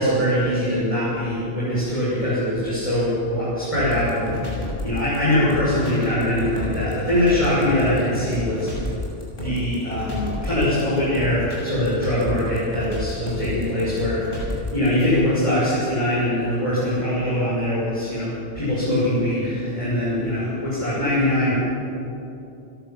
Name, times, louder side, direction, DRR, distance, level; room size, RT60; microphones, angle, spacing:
voice 1, 0.0-9.0 9.4-21.5, left 1 dB, 25° left, -10 dB, 6.9 m, -22 dB
sound 1, 3.7-14.9, left 2 dB, 45° left, 6.5 m, -31 dB
28.5 x 12.5 x 7.6 m, 2.9 s
omnidirectional pair, 1.3 m